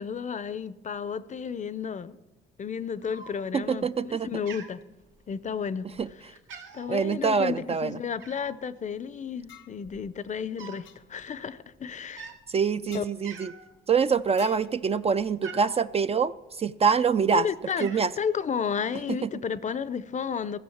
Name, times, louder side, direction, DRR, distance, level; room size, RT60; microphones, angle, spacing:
voice 1, 0.0-2.2 2.6-4.8 5.3-5.9 6.7-12.4 12.9-13.0 17.3-20.6, left 7 dB, 40° left, 0.6 m, -32 dB
Cat, 3.0-3.7 4.0-4.2 4.5-5.5 5.9-6.1 6.4-7.0 8.2-8.6 9.4-9.5 9.7-10.9 11.2-11.4 12.0-12.4 12.9-13.0 13.2-13.8 14.2-15.8 16.6-17.2 17.5-18.1, right 6 dB, 80° right, 1.7 m, -45 dB
voice 2, 3.5-4.3 6.0-6.1 6.9-8.0 12.5-13.5 13.9-17.5 17.8-18.1 19.1-19.3, right 6 dB, 30° right, 0.4 m, -25 dB
sound 1, 9.5-9.8 10.8-11.0 12.9-13.1 14.4-14.8, left 10 dB, 75° left, 1.0 m, -47 dB
15.0 x 6.1 x 7.2 m
cardioid pair, 90°, 20 cm